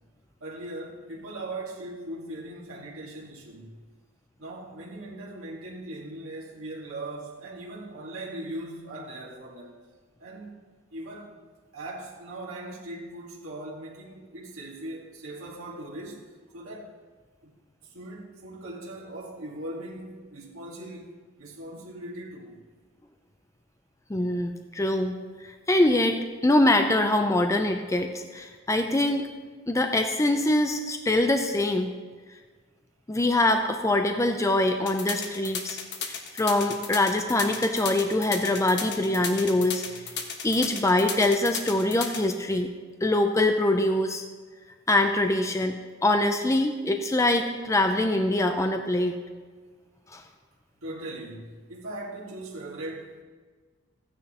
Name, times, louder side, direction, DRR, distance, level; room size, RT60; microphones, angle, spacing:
voice 1, 0.4-3.8 4.4-9.8 10.2-10.6 10.9-11.3 11.7-16.3 16.5-17.0 17.4-17.5 17.8-21.1 21.4-22.6 50.8-53.2, right 1 dB, 80° right, -4 dB, 1.7 m, -39 dB
voice 2, 24.1-29.3 29.7-31.9 33.1-35.8 36.1-39.8 40.4-42.7 43.0-44.2 44.9-49.1 50.1-50.2, left 1 dB, 15° left, 5 dB, 0.5 m, -24 dB
sound 1, 34.9-42.2, left 6 dB, 55° left, 1.1 m, -34 dB
14.5 x 9.6 x 2.9 m, 1.4 s
head